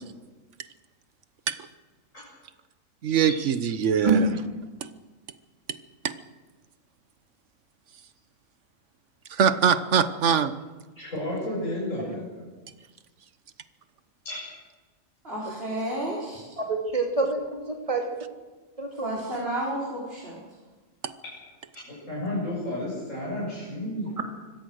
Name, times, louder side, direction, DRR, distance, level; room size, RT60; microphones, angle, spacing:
voice 1, 3.0-4.3 4.8-4.9 5.7-5.8 6.0-6.1 9.3-10.5 21.0-21.1, right 7 dB, 60° right, 12 dB, 1.3 m, -23 dB
voice 2, 11.0-12.3 14.2-14.4 21.2-21.3 21.9-24.1, left 1 dB, 70° left, -6 dB, 7.8 m, -32 dB
voice 3, 15.2-16.5 19.0-20.4, right 1 dB, 45° right, -6 dB, 5.3 m, -31 dB
voice 4, 16.6-18.1 18.8-19.2 24.2-24.3, right 3 dB, 25° right, 2 dB, 2.8 m, -26 dB
25.0 x 16.5 x 6.5 m, 1.3 s
omnidirectional pair, 1.4 m